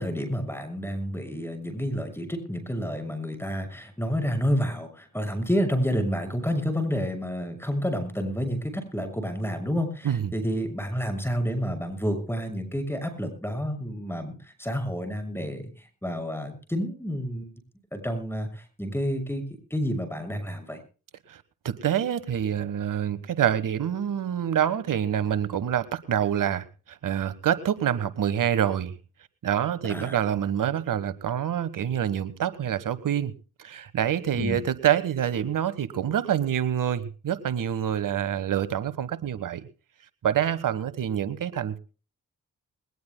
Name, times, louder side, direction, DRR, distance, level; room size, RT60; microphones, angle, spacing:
voice 1, 0.0-17.5 17.9-19.4 19.7-20.8 29.8-30.2 34.3-34.6, equal, 5° left, 6 dB, 6.4 m, -29 dB
voice 2, 21.3-28.9 29.4-33.3 33.6-39.7 40.2-41.8, right 9 dB, 65° right, 16 dB, 1.3 m, -26 dB
21.0 x 19.5 x 2.2 m, 0.36 s
supercardioid pair, 45°, 35 cm